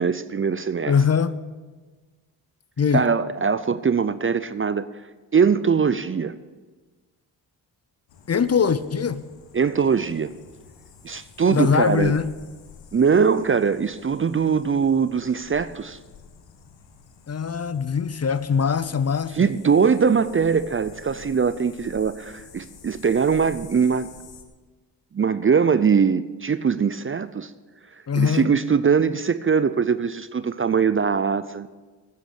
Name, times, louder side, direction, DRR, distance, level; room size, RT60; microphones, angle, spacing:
voice 1, 0.0-0.9 2.9-4.9 5.3-6.4 9.5-10.3 11.0-12.1 12.9-16.0 19.3-24.1 25.1-27.5 28.2-31.7, right 6 dB, 30° right, 0.5 m, -21 dB
voice 2, 0.9-1.4 2.8-3.1 8.3-9.2 11.5-12.3 17.3-19.5 28.1-28.5, left 6 dB, 35° left, 0.6 m, -22 dB
sound 1, 8.1-24.4, left 6 dB, 90° left, 1.2 m, -48 dB
9.5 x 7.7 x 8.2 m
cardioid pair, 55°, 43 cm